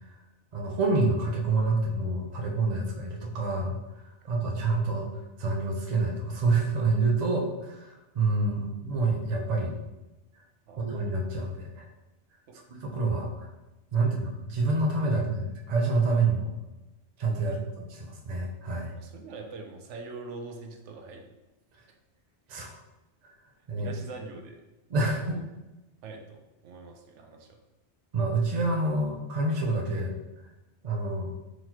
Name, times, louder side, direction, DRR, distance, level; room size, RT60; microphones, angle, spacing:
voice 1, 0.5-3.8 4.3-5.1 5.4-7.8 8.1-9.7 10.8-11.9 12.7-13.5 13.9-16.5 17.2-18.9 22.5-22.7 23.7-23.9 24.9-25.4 28.1-30.1 30.8-31.3, right 3 dB, 45° right, 0 dB, 0.6 m, -27 dB
voice 2, 18.9-21.3 22.5-22.7 23.7-24.6 25.1-25.4 26.0-27.6, right 3 dB, 90° right, 3 dB, 0.9 m, -44 dB
3.9 x 3.0 x 2.8 m, 1.0 s
omnidirectional pair, 1.2 m